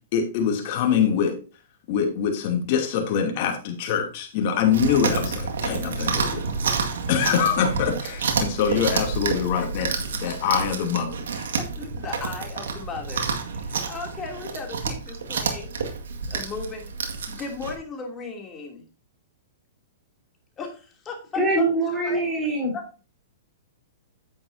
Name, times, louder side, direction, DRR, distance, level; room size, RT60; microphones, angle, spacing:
voice 1, 0.1-1.4 1.9-6.4 6.7-11.5, left 7 dB, 45° left, 2 dB, 2.7 m, -24 dB
Chewing mastication, 4.7-17.8, right 5 dB, 85° right, 1.9 m, -29 dB
voice 2, 11.5-15.7 16.3-16.9 17.3-18.8 20.6-21.7 21.9-22.2 22.7-23.0, left 4 dB, 20° left, 1 dB, 2.9 m, -36 dB
voice 3, 21.3-22.7, right 2 dB, 10° right, -3 dB, 4.0 m, -23 dB
9.8 x 8.7 x 2.7 m, 0.34 s
hypercardioid pair, 145°, 0 cm